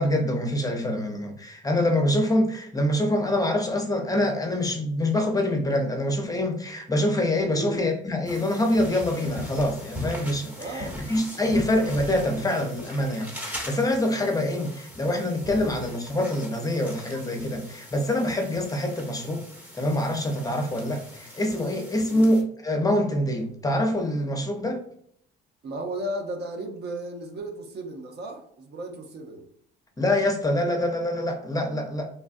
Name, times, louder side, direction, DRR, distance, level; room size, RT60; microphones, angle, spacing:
voice 1, 0.0-19.4 19.7-24.8 30.0-32.1, left 1 dB, 15° left, 3 dB, 0.7 m, -25 dB
voice 2, 7.5-7.8 10.6-11.0 15.5-15.8 22.1-22.3 25.6-29.5, right 1 dB, 55° right, 3 dB, 0.7 m, -35 dB
sound 1, 8.2-22.4, left 1 dB, 10° right, 1.1 m, -40 dB
3.3 x 2.3 x 2.5 m, 0.65 s
supercardioid pair, 75°, 20 cm